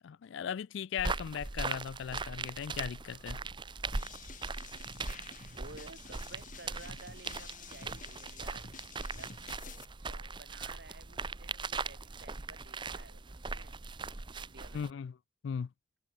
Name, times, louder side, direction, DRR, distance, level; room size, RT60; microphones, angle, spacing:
voice 1, 0.0-3.4 14.7-15.1 15.4-15.7, left 7 dB, 65° left, 0.3 m, -38 dB
sound 1, 1.0-14.9, right 4 dB, 25° right, 0.7 m, -40 dB
sound 2, 3.9-9.8, left 5 dB, 40° left, 2.9 m, -50 dB
voice 2, 5.5-9.3 10.0-13.8 14.3-14.9, right 3 dB, 55° right, 2.8 m, -54 dB
head